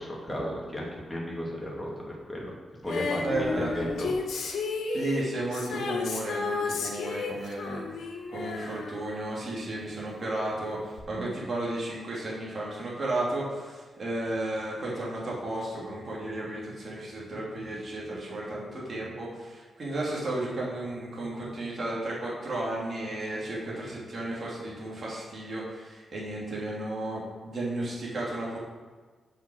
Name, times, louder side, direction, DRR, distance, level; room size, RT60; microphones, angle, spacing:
voice 1, 0.0-2.5 2.8-4.1, equal, 5° left, -3 dB, 2.5 m, -34 dB
Female singing, 2.9-9.8 11.0-11.1, left 4 dB, 80° left, 1.3 m, -33 dB
voice 2, 3.2-3.7 4.9-7.8 8.3-28.6, right 1 dB, 45° right, -5 dB, 3.0 m, -33 dB
7.4 x 5.9 x 6.4 m, 1.4 s
cardioid pair, 95°, 0 cm